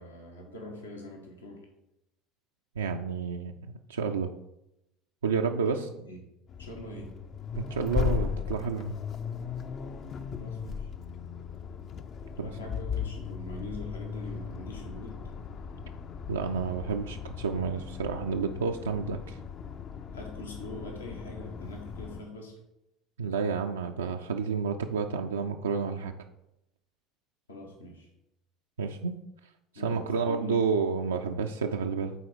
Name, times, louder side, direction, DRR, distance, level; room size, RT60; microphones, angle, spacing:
voice 1, 0.0-1.7 5.7-6.3 6.6-7.2 10.4-10.9 12.4-15.2 20.1-22.6 27.5-28.1 29.7-30.6, left 1 dB, 80° left, 1 dB, 1.2 m, -43 dB
voice 2, 2.8-4.3 5.2-5.9 7.6-9.0 12.4-12.5 16.3-19.4 23.2-26.1 28.8-29.2 29.8-32.1, right 5 dB, 75° right, 3 dB, 0.3 m, -30 dB
Accelerating revving vroom, 6.5-22.2, left 6 dB, 40° left, 0.5 m, -37 dB
7.9 x 4.1 x 4.9 m, 0.88 s
figure-of-eight pair, 65°, 0 cm